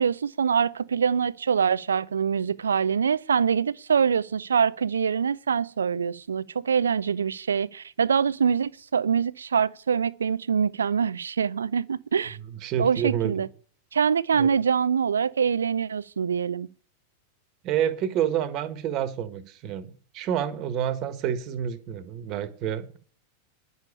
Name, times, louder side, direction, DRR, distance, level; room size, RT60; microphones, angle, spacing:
voice 1, 0.0-12.4 12.8-13.5 13.9-16.7, right 6 dB, 70° right, 0.5 m, -24 dB
voice 2, 12.6-13.5 14.4-14.5 17.6-23.0, right 9 dB, 40° right, 1.4 m, -28 dB
10.5 x 7.0 x 8.4 m
figure-of-eight pair, 90°, 0 cm